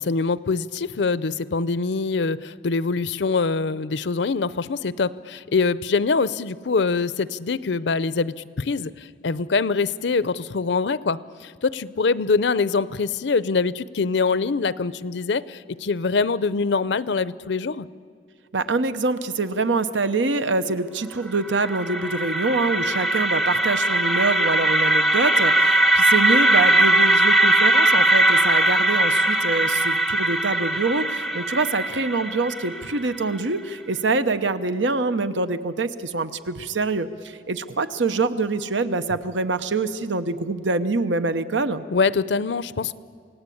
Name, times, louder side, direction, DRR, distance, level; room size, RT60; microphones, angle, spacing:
voice 1, 0.0-17.9 41.9-43.0, left 4 dB, 70° left, 18 dB, 0.6 m, -24 dB
voice 2, 18.5-41.8, right 3 dB, 90° right, 11 dB, 1.0 m, -25 dB
sound 1, 21.3-33.3, right 2 dB, ahead, 0.6 m, -20 dB
28.5 x 17.5 x 8.6 m, 2.1 s
head